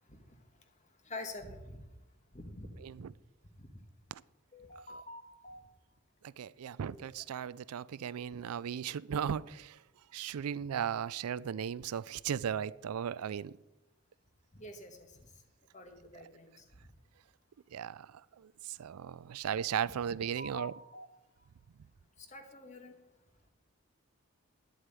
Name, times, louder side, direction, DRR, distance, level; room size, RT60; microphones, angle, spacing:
voice 1, 1.0-1.9 2.3-2.7 3.6-3.8 4.5-5.7 6.9-7.0 14.5-15.3 15.7-16.9 19.8-19.9 20.4-21.1 21.4-21.5 22.2-22.9, left 2 dB, 35° left, 1.7 m, -47 dB
voice 2, 6.2-9.8 10.1-13.5 17.7-20.7, right 8 dB, 90° right, 0.4 m, -36 dB
10.5 x 8.0 x 9.0 m
head